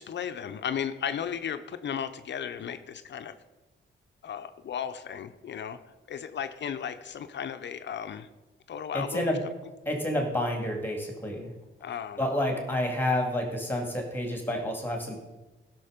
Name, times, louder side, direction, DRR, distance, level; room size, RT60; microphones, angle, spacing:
voice 1, 0.0-3.4 4.2-5.8 6.1-8.3 8.7-9.3 11.8-12.2, left 8 dB, 60° left, 9 dB, 0.7 m, -35 dB
voice 2, 8.9-9.4 9.9-11.5 12.2-15.2, left 1 dB, 10° left, 2 dB, 2.2 m, -29 dB
16.0 x 6.3 x 5.1 m, 1.2 s
wide cardioid pair, 135°, 21 cm